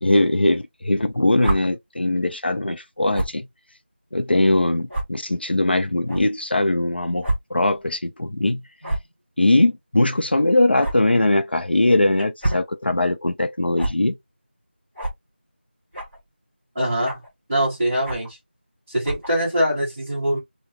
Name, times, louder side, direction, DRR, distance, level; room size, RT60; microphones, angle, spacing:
voice 1, 0.0-3.5 4.1-8.6 9.4-14.2, left 2 dB, 65° left, 0.6 m, -20 dB
sound 1, 1.4-1.6 3.1-3.4 4.1-4.2 4.9-5.0 6.1-6.2 7.2-7.4 7.7-7.8 8.8-9.1 10.8-10.9 12.2-12.7 13.8-13.9 14.9-15.2 15.9-16.2 17.0-17.3 18.0-18.3 19.0-19.3, right 1 dB, 5° left, 0.7 m, -26 dB
voice 2, 16.7-17.2 17.5-18.4 18.9-20.4, equal, 10° right, 1.3 m, -23 dB
3.6 x 2.2 x 2.8 m
figure-of-eight pair, 175°, 6 cm